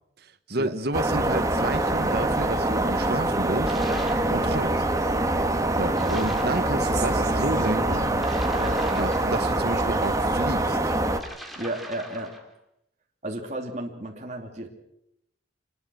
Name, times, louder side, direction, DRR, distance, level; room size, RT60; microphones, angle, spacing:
voice 1, 0.5-3.7 4.3-4.8 5.7-8.1 8.9-11.0, right 2 dB, 55° right, 1.3 m, -30 dB
sound 1, 0.9-11.2, right 1 dB, 15° right, 1.6 m, -24 dB
sound 2, 3.6-4.3 6.0-6.6 8.1-9.8 11.1-12.5, right 1 dB, ahead, 2.8 m, -41 dB
voice 2, 5.9-6.2 6.7-8.3 8.6-8.8 11.6-12.3 13.2-14.7, right 2 dB, 35° right, 2.8 m, -34 dB
25.5 x 21.0 x 6.3 m
head